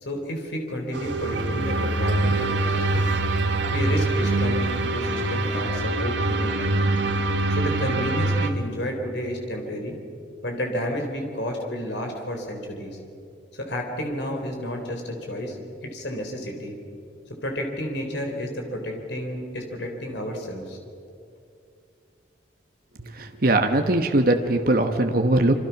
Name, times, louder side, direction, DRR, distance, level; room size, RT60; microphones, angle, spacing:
voice 1, 0.0-3.1 3.7-6.8 7.5-10.0 10.4-13.0 13.5-15.6 15.8-16.8 17.4-20.8, equal, 65° left, 2 dB, 4.1 m, -31 dB
sound 1, 0.9-8.5, right 2 dB, 70° right, 1.7 m, -24 dB
voice 2, 23.0-25.6, right 2 dB, 50° right, 5 dB, 1.3 m, -21 dB
27.5 x 26.0 x 6.0 m, 2.5 s
head